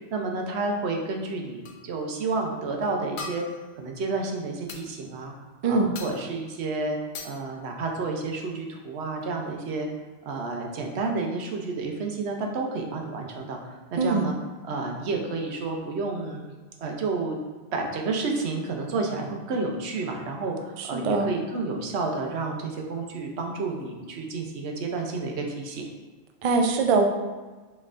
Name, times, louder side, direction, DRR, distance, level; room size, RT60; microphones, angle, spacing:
voice 1, 0.1-3.4 3.8-5.3 5.7-7.0 7.2-9.9 10.3-14.3 14.7-16.4 16.8-17.4 17.7-25.9, right 3 dB, 80° right, 2 dB, 0.9 m, -30 dB
sound 1, 1.7-1.9 3.2-3.8 4.7-4.9 6.0-6.4 7.1-7.5 8.8-8.9 9.2-9.3, left 4 dB, 60° left, 0.6 m, -40 dB
voice 2, 20.8-21.3 26.4-27.0, right 4 dB, 60° right, 4 dB, 0.3 m, -22 dB
5.3 x 3.2 x 2.5 m, 1.3 s
omnidirectional pair, 1.1 m